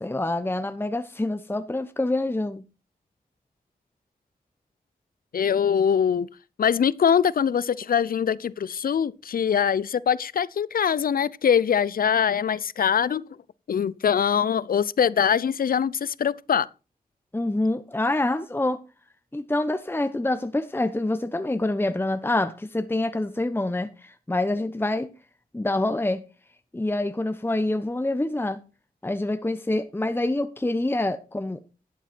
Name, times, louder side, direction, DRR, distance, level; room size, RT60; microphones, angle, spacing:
voice 1, 0.0-2.6 17.3-18.8 19.3-25.1 25.5-26.2 26.7-28.6 29.0-31.6, left 2 dB, 15° left, 0.9 m, -26 dB
voice 2, 5.3-6.3 6.6-13.2 13.7-16.7, left 7 dB, 70° left, 0.5 m, -23 dB
11.5 x 8.0 x 4.3 m
cardioid pair, 60°, 16 cm